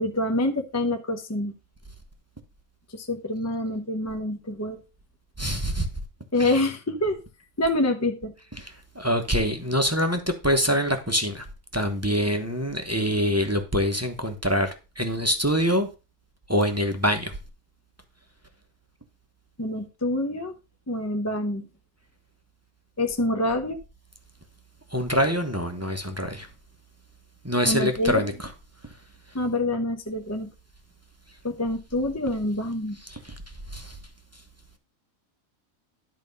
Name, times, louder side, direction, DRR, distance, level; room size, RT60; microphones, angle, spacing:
voice 1, 0.0-1.5 2.9-4.8 6.3-7.2 7.6-8.3 19.6-20.5 20.9-21.7 23.0-23.8 27.6-28.2 29.3-30.5 31.4-33.0, left 1 dB, 15° left, 0.6 m, -26 dB
voice 2, 5.4-5.9 6.4-6.6 8.6-11.4 11.7-15.9 16.5-17.3 24.9-26.5 27.4-28.3 33.1-33.3 33.7-34.0, equal, 15° right, 0.9 m, -25 dB
11.0 x 4.0 x 5.3 m
omnidirectional pair, 1.5 m